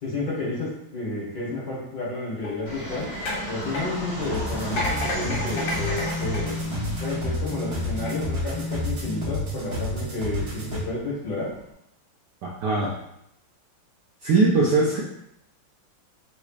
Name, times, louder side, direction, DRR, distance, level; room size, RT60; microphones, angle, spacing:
voice 1, 0.0-3.1 3.5-11.5, left 2 dB, 50° left, -7 dB, 1.8 m, -31 dB
sound 1, 2.4-7.3 7.9-8.1, left 1 dB, 70° left, 1.6 m, -32 dB
Fixed-wing aircraft airplane, 2.6-11.7, right 1 dB, 15° left, 1.3 m, -37 dB
sound 2, 4.2-10.8, left 1 dB, 60° right, 1.6 m, -30 dB
voice 2, 12.4-13.0 14.2-15.0, right 3 dB, 75° right, -3 dB, 1.0 m, -21 dB
4.0 x 3.1 x 2.3 m, 0.77 s
omnidirectional pair, 2.2 m